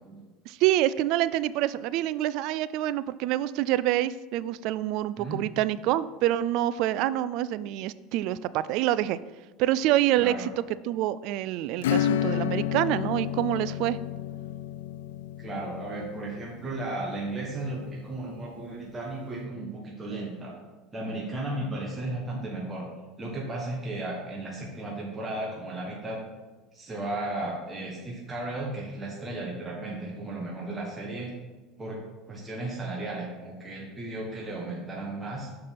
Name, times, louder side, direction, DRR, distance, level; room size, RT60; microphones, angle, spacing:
voice 1, 0.5-9.2 9.6-10.5 10.9-14.0, right 13 dB, 65° right, 16 dB, 0.3 m, -26 dB
voice 2, 10.2-10.5 15.4-20.5 20.9-22.9 23.2-26.2 26.7-31.3 31.8-32.0 32.3-35.5, right 2 dB, 20° right, -3 dB, 1.5 m, -35 dB
Acoustic guitar / Strum, 11.8-18.0, left 10 dB, 90° left, 0.3 m, -31 dB
6.6 x 5.3 x 5.8 m, 1.2 s
supercardioid pair, 105°, 0 cm